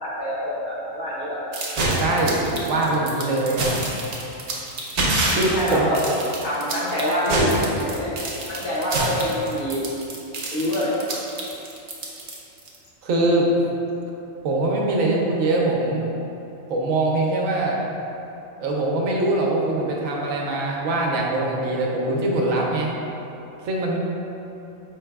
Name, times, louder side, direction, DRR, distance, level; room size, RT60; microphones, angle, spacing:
voice 1, 0.0-1.4 5.3-6.1 6.4-8.1 8.3-9.8 10.5-10.9, equal, 50° left, -7 dB, 0.9 m, -25 dB
sound 1, 1.5-12.7, right 2 dB, 60° right, 0.4 m, -26 dB
voice 2, 1.9-3.7 5.3-5.9 13.0-13.5 14.4-16.1 16.7-17.8 18.6-22.9 23.6-24.0, right 2 dB, 85° right, -2 dB, 1.0 m, -22 dB
4.7 x 3.3 x 2.2 m, 2.9 s
omnidirectional pair, 1.4 m